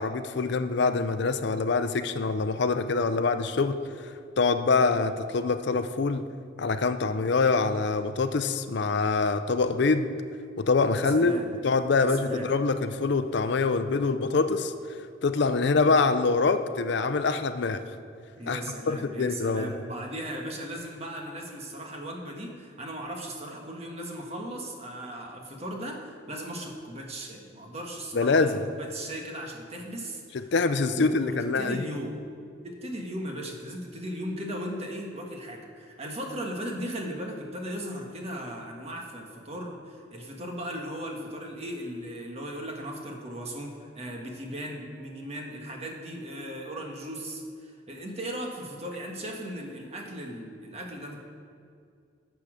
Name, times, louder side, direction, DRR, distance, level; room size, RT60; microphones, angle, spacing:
voice 1, 0.0-6.2 6.6-10.1 10.6-14.7 15.2-17.8 18.5-18.6 18.9-19.7 28.1-28.6 30.3-31.8, left 4 dB, 60° left, 10 dB, 0.5 m, -25 dB
voice 2, 10.9-11.5 12.0-12.5 18.4-30.5 30.9-32.1 32.6-51.2, equal, 35° right, 1 dB, 1.4 m, -37 dB
12.5 x 6.9 x 5.0 m, 2.3 s
head